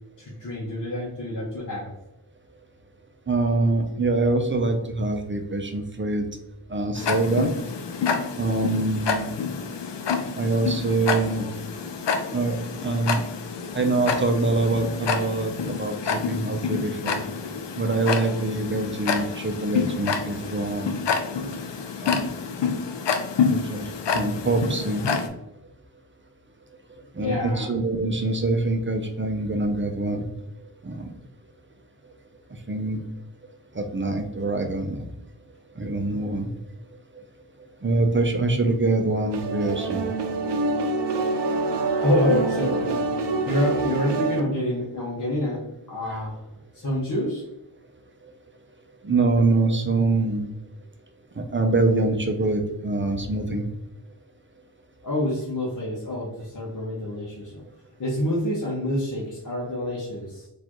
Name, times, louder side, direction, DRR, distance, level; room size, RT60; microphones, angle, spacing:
voice 1, 0.2-1.9 27.2-27.7 42.0-46.4 46.7-47.4 55.0-57.6 58.0-60.5, left 1 dB, 45° left, -4 dB, 0.8 m, -27 dB
voice 2, 3.3-6.3 6.7-7.5 8.4-9.3 10.4-11.5 12.3-12.6 12.8-13.2 13.7-17.2 17.8-20.9 22.0-22.2 23.5-23.9 24.1-25.0 27.1-30.2 30.8-31.1 32.7-33.0 33.7-35.1 35.8-36.5 37.8-40.1 46.0-46.3 49.0-50.5 51.4-53.7, right 2 dB, 30° right, 5 dB, 0.5 m, -24 dB
Tick-tock, 7.0-25.3, left 5 dB, 80° left, 0.5 m, -28 dB
sound 1, 39.3-44.4, right 3 dB, 75° right, 0.5 m, -26 dB
4.1 x 2.5 x 3.0 m, 0.89 s
wide cardioid pair, 60°, 42 cm